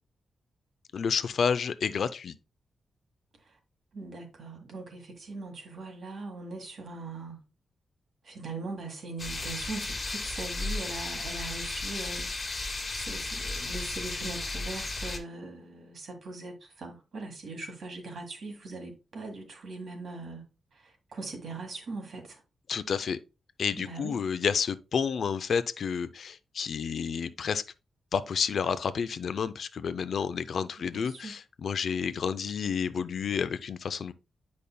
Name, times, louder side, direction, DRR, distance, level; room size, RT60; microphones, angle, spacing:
voice 1, 0.9-2.4 22.7-23.2 23.6-27.6 28.1-34.1, left 6 dB, 65° left, 0.4 m, -30 dB
voice 2, 3.9-7.4 8.2-12.3 12.9-20.5 20.7-22.4 23.8-24.2 30.9-31.4, right 3 dB, 60° right, 1.7 m, -40 dB
sound 1, 9.2-15.2, left 2 dB, 30° left, 1.5 m, -34 dB
8.5 x 5.2 x 2.2 m
wide cardioid pair, 115°, 0 cm